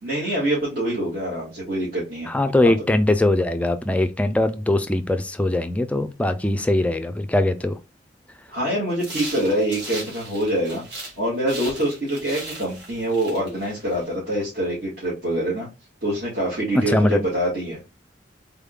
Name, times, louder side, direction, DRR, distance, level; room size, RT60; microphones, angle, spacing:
voice 1, 0.0-2.3 8.5-10.8 11.2-15.7 16.0-17.8, right 1 dB, 55° right, 1.8 m, -25 dB
voice 2, 2.3-7.8 16.7-17.2, left 1 dB, 10° left, 0.3 m, -21 dB
sound 1, 9.0-11.2 11.5-14.1, right 2 dB, 75° right, 1.7 m, -37 dB
3.6 x 3.6 x 2.3 m
head